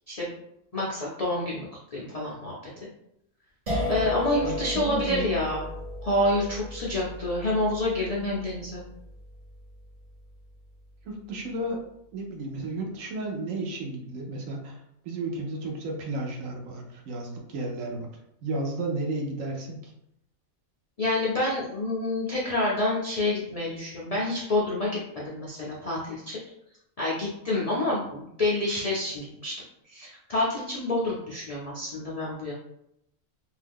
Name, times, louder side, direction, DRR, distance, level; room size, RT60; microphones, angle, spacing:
voice 1, 0.7-2.5 3.9-5.6 6.0-8.8 21.0-26.4 27.0-29.5 29.9-32.5, left 1 dB, 75° left, -5 dB, 0.3 m, -28 dB
sound 1, 3.7-10.6, left 1 dB, 35° right, 0.6 m, -35 dB
voice 2, 4.4-5.4 11.0-11.8 12.1-14.8 15.0-18.1 18.4-19.9, right 2 dB, 70° right, 1 dB, 1.0 m, -33 dB
2.7 x 2.3 x 3.4 m, 0.78 s
omnidirectional pair, 1.4 m